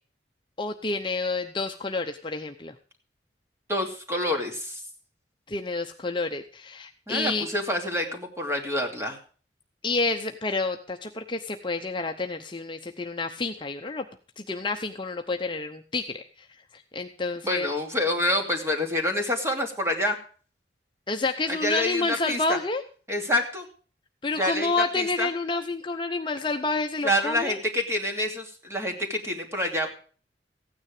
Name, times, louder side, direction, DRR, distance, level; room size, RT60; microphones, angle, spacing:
voice 1, 0.6-2.7 5.5-7.5 9.8-14.0 14.4-16.2 16.9-17.7 21.1-22.8 24.2-27.6, left 3 dB, 25° left, 5 dB, 0.8 m, -29 dB
voice 2, 3.7-4.8 7.1-9.2 17.4-20.2 21.5-22.6 23.1-23.7 24.4-25.3 27.0-29.9, left 1 dB, 15° right, 2 dB, 2.6 m, -27 dB
15.5 x 9.6 x 4.9 m, 0.41 s
head